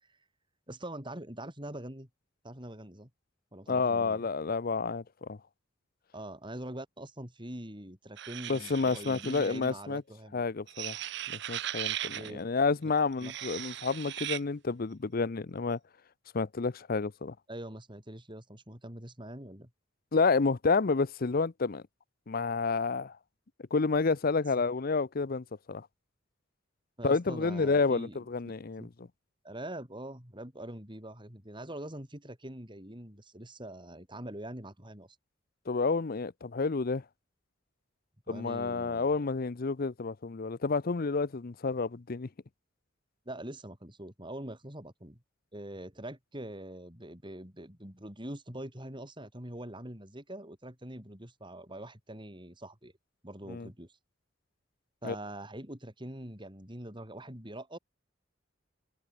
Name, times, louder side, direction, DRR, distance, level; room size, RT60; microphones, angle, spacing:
voice 1, 0.7-2.1 2.4-3.1 3.5-4.3 6.1-10.4 12.1-12.4 13.2-13.3 17.5-19.7 27.0-28.2 28.8-28.9 29.4-35.1 38.3-39.1 43.2-45.2 45.5-52.9 53.2-53.9 55.0-57.8, right 1 dB, 25° right, 6.9 m, -43 dB
voice 2, 3.7-5.4 8.5-10.0 10.3-15.8 16.3-17.3 20.1-21.8 22.3-23.2 23.7-25.9 27.0-29.1 35.7-37.0 38.3-42.3 53.5-53.7 55.0-55.1, left 4 dB, 50° left, 0.6 m, -30 dB
sound 1, 8.2-9.7 10.7-12.3 13.1-14.4, right 13 dB, 60° right, 0.8 m, -38 dB
head